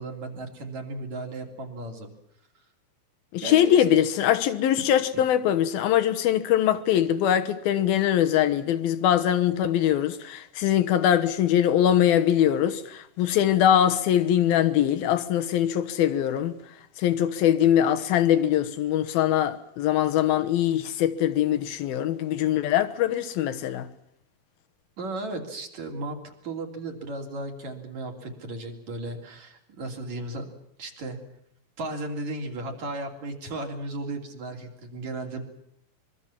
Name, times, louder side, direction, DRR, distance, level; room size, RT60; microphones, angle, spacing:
voice 1, 0.0-2.1 3.4-3.8 5.1-5.2 25.0-30.4 30.8-31.2 31.8-35.5, right 2 dB, 50° right, 4.4 m, -35 dB
voice 2, 3.3-16.5 17.0-23.9, left 10 dB, 75° left, 3.0 m, -22 dB
25.0 x 23.0 x 7.3 m
omnidirectional pair, 4.4 m